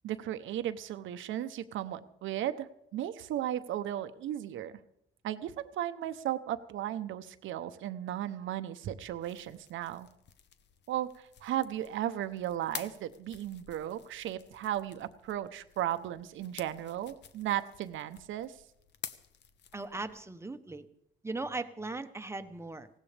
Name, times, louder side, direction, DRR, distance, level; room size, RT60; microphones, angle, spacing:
voice 1, 0.0-4.7 5.2-10.1 10.9-18.6, right 12 dB, 80° right, 11 dB, 0.8 m, -35 dB
sound 1, 9.0-20.2, left 8 dB, 60° left, 0.9 m, -50 dB
voice 2, 19.7-20.9 21.2-22.9, right 3 dB, 15° right, 9 dB, 1.0 m, -38 dB
19.0 x 16.5 x 3.4 m, 0.75 s
cardioid pair, 90°, 20 cm